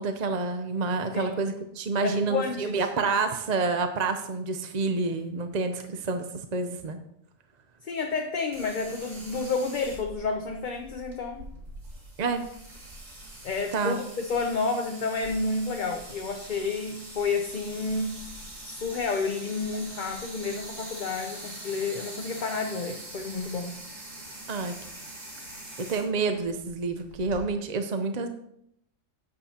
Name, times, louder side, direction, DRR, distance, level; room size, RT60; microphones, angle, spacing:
voice 1, 0.0-6.3 6.5-7.0 12.2-12.5 13.7-14.0 24.5-24.7 25.8-28.3, right 3 dB, 45° right, 7 dB, 0.7 m, -28 dB
voice 2, 2.0-2.9 7.8-11.5 13.4-18.2 18.6-23.8, left 4 dB, 45° left, 4 dB, 0.8 m, -30 dB
sound 1, 8.5-27.4, right 1 dB, 85° right, 2.7 m, -43 dB
14.0 x 9.2 x 2.9 m, 0.75 s
omnidirectional pair, 1.3 m